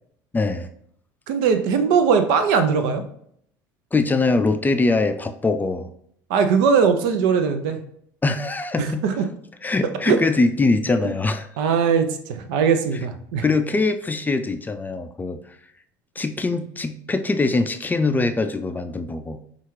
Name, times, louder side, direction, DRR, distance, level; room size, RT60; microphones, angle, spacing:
voice 1, 0.3-0.7 3.9-5.9 8.2-9.0 9.6-11.5 13.4-15.4 16.2-19.4, left 3 dB, 15° left, 7 dB, 0.4 m, -22 dB
voice 2, 1.3-3.0 6.3-7.8 8.8-9.3 10.1-10.2 11.0-11.1 11.6-13.4, right 6 dB, 75° right, 8 dB, 0.6 m, -20 dB
5.5 x 2.4 x 3.2 m, 0.67 s
hypercardioid pair, 75°, 10 cm